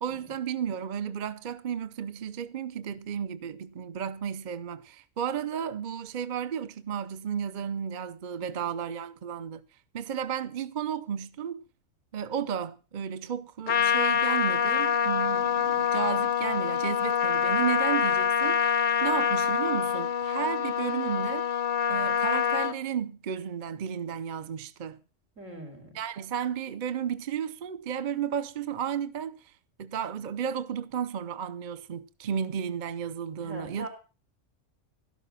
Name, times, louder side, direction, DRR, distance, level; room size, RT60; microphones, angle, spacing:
voice 1, 0.0-9.6 9.9-11.6 12.1-21.5 21.9-25.0 25.9-29.5 29.8-33.9, right 8 dB, 45° right, 0.8 m, -33 dB
voice 2, 8.4-8.7 25.4-26.0 33.4-33.9, right 1 dB, 85° right, 4.7 m, -42 dB
Trumpet, 13.7-22.7, left 8 dB, 45° left, 0.8 m, -26 dB
13.0 x 11.5 x 5.7 m
omnidirectional pair, 1.3 m